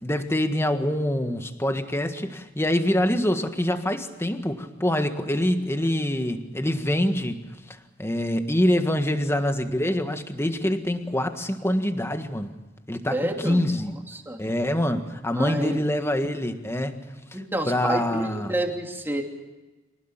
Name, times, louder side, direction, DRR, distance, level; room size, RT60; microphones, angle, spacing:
voice 1, 0.0-7.4 7.7-12.5 12.9-13.9 14.4-17.0 17.7-18.5, left 1 dB, 15° left, 7 dB, 1.6 m, -25 dB
voice 2, 13.1-14.4 15.3-15.8 17.3-19.2, right 1 dB, 10° right, 2 dB, 3.0 m, -29 dB
26.0 x 19.0 x 7.4 m, 1.2 s
head